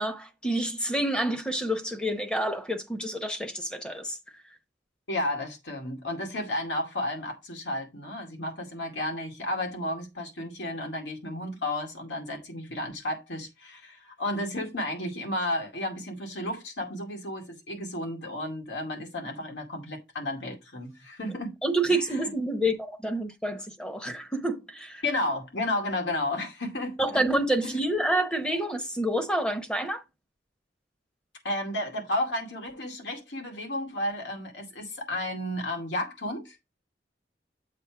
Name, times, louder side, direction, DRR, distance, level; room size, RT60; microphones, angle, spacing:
voice 1, 0.0-4.2 21.6-25.0 27.0-30.0, right 1 dB, 5° left, 0.9 m, -28 dB
voice 2, 5.1-21.5 21.9-22.3 25.0-27.2 27.6-27.7 31.4-36.6, left 1 dB, 85° left, 2.3 m, -32 dB
7.5 x 3.2 x 5.8 m
head